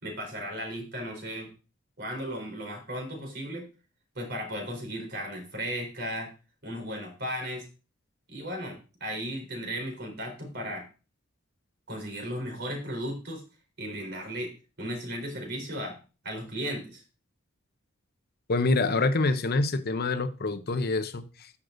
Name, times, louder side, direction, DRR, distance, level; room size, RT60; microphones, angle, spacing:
voice 1, 0.0-1.5 2.0-3.7 4.1-6.3 6.6-7.7 8.3-10.9 11.9-13.4 13.8-14.5 14.8-16.0 16.2-17.0, equal, 55° right, 4.0 m, -35 dB
voice 2, 18.5-21.5, left 3 dB, 50° left, 0.7 m, -26 dB
14.0 x 6.6 x 2.6 m
head